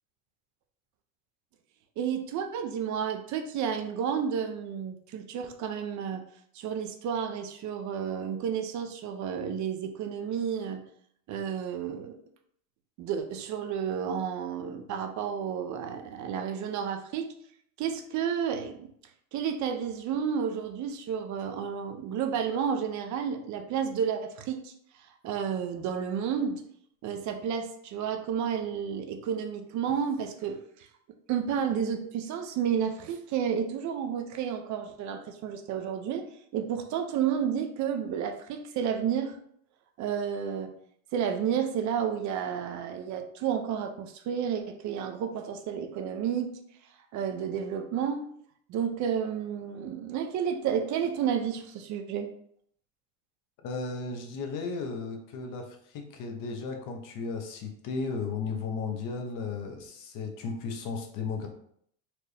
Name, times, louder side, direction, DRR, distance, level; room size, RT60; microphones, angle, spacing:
voice 1, 2.0-6.2 6.5-10.8 11.3-12.1 13.0-17.3 17.8-18.9 19.3-24.7 25.2-26.6 27.0-30.6 31.3-39.4 40.0-40.7 41.1-46.5 47.1-48.3 48.7-52.3, right 8 dB, 50° right, 6 dB, 0.6 m, -31 dB
voice 2, 53.6-61.5, left 4 dB, 55° left, 3 dB, 1.0 m, -35 dB
4.3 x 2.7 x 3.3 m, 0.66 s
supercardioid pair, 110°, 37 cm